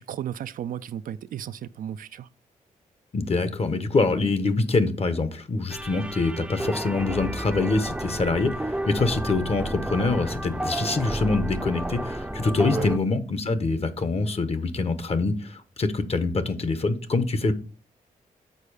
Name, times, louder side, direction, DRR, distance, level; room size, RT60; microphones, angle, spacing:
voice 1, 0.0-2.3 6.4-6.5 12.7-12.9, right 10 dB, 70° right, 0.4 m, -34 dB
voice 2, 3.1-17.5, left 3 dB, 45° left, 1.1 m, -25 dB
sound 1, 5.7-13.0, right 1 dB, 5° right, 0.6 m, -31 dB
6.8 x 4.5 x 4.9 m
cardioid pair, 55°, 15 cm